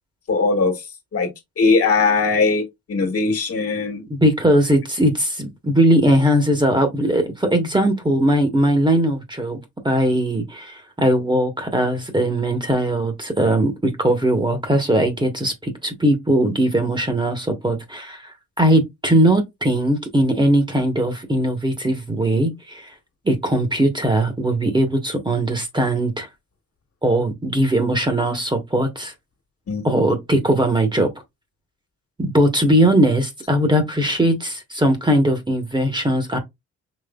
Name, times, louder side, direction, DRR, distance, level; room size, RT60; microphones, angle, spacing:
voice 1, 0.3-0.8 1.1-1.3 1.6-4.0 29.7-29.9, left 4 dB, 50° left, 1.5 m, -20 dB
voice 2, 4.1-9.6 9.8-22.8 23.2-26.3 27.0-29.1 29.8-31.1 32.2-36.4, right 1 dB, 15° right, 1.1 m, -19 dB
5.2 x 3.1 x 2.3 m
cardioid pair, 90°, 30 cm